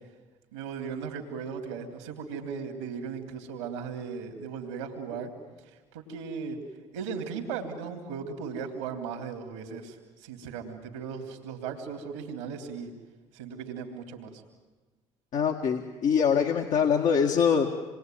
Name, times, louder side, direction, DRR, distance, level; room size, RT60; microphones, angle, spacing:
voice 1, 0.5-5.3 5.9-6.6 6.9-12.9 13.3-14.3, right 6 dB, 85° right, 4 dB, 3.2 m, -37 dB
voice 2, 15.3-17.7, left 7 dB, 60° left, 1 dB, 1.9 m, -24 dB
27.0 x 22.0 x 9.3 m, 1.3 s
hypercardioid pair, 60°, 15 cm